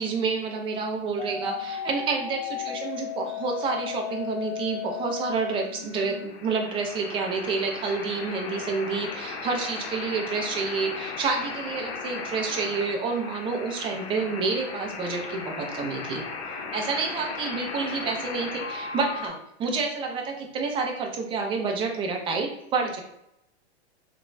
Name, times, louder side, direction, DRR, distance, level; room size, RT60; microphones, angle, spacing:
voice 1, 0.0-16.2 16.7-23.0, right 4 dB, 15° right, 2 dB, 0.4 m, -29 dB
sound 1, 1.2-19.3, left 6 dB, 70° left, 0.7 m, -36 dB
2.9 x 2.2 x 2.5 m, 0.81 s
hypercardioid pair, 120°, 33 cm